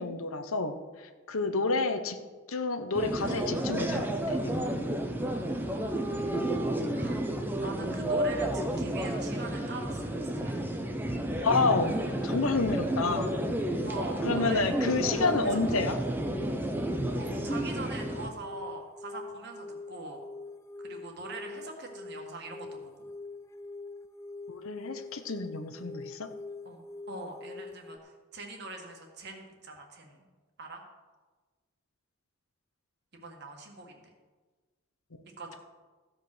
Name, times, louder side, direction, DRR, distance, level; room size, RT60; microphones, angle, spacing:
voice 1, 0.0-2.2 2.5-4.6 11.4-12.0 12.2-13.3 14.2-16.0 24.5-26.3, left 3 dB, 75° left, 8 dB, 0.9 m, -29 dB
voice 2, 1.4-2.0 5.2-6.6 6.9-7.2 7.6-10.8 12.7-12.9 13.8-14.6 15.1-15.5 17.1-20.2 20.8-23.1 26.6-30.3 30.6-30.8 33.1-34.1 35.4-35.6, right 2 dB, 50° right, 2 dB, 1.7 m, -43 dB
sound 1, 2.9-18.3, right 1 dB, 10° right, 0.7 m, -31 dB
sound 2, 12.1-28.0, left 3 dB, 15° left, 0.3 m, -45 dB
15.0 x 5.2 x 6.2 m, 1.3 s
head